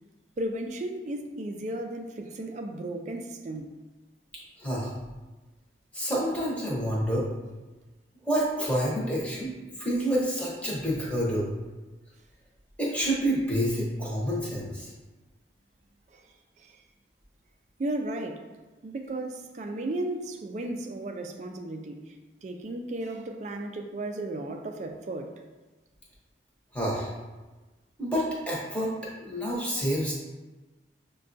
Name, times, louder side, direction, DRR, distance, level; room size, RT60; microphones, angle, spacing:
voice 1, 0.4-3.7 16.1-16.2 16.6-16.8 17.8-18.5 18.8-22.2 22.4-25.3, right 1 dB, 40° right, 0.3 m, -34 dB
voice 2, 4.6-4.9 5.9-7.3 8.2-9.5 9.8-11.5 12.8-14.9 26.7-27.1 28.0-28.9 29.2-30.1, equal, 10° left, 0.8 m, -28 dB
6.3 x 2.2 x 2.5 m
head